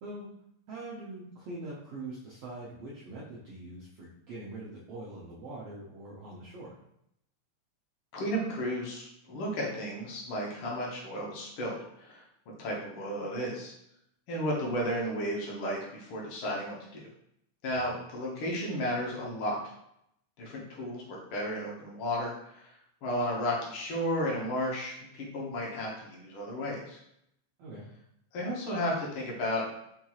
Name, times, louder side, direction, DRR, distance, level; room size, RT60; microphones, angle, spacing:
voice 1, 0.7-6.8 17.7-17.9 27.6-27.8, right 2 dB, 75° right, -6 dB, 1.4 m, -43 dB
voice 2, 8.1-12.2 12.6-13.7 14.3-17.1 17.6-19.7 20.4-22.7 23.0-27.0 28.3-29.7, equal, 75° left, -3 dB, 1.2 m, -33 dB
5.6 x 2.9 x 2.3 m, 0.75 s
omnidirectional pair, 3.6 m